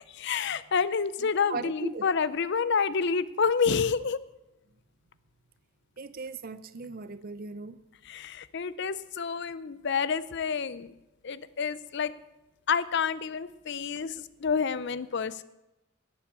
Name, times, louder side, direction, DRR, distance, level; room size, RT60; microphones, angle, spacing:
voice 1, 0.1-4.2 8.0-10.9 11.2-12.1 12.7-15.4, left 6 dB, 55° left, 0.5 m, -28 dB
voice 2, 1.5-2.1 6.0-7.8, right 4 dB, 45° right, 0.6 m, -37 dB
11.5 x 8.6 x 8.3 m
head